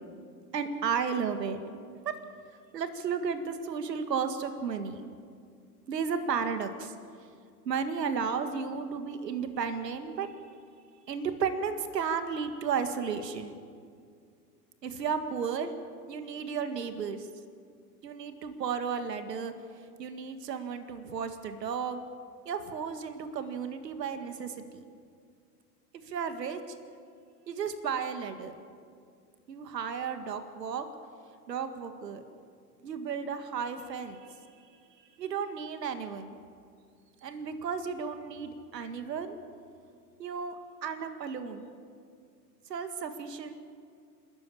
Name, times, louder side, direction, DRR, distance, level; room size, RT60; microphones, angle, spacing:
voice 1, 0.5-1.6 2.0-2.1 2.7-5.0 5.9-6.9 7.7-10.3 11.1-13.6 14.8-15.7 16.1-17.3 18.0-19.5 20.0-22.0 22.5-24.8 26.1-26.6 27.5-28.6 29.5-30.9 31.5-32.2 32.8-34.4 35.2-36.4 37.2-39.4 40.2-40.6 40.8-41.7 42.7-43.5, right 6 dB, 80° right, 8 dB, 2.0 m, -33 dB
28.0 x 13.5 x 8.7 m, 2.2 s
hypercardioid pair, 95°, 48 cm